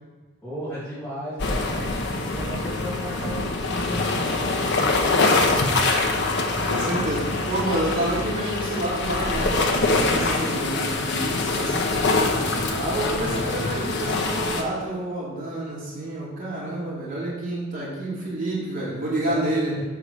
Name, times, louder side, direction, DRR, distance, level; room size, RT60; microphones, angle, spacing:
voice 1, 0.4-6.1 12.3-12.7 19.2-19.8, equal, 5° left, -13 dB, 2.6 m, -35 dB
sound 1, 1.4-14.6, left 3 dB, 60° left, 0.9 m, -24 dB
voice 2, 6.3-11.8 12.7-19.8, right 1 dB, 45° right, -7 dB, 2.7 m, -29 dB
6.5 x 4.8 x 6.5 m, 1.3 s
head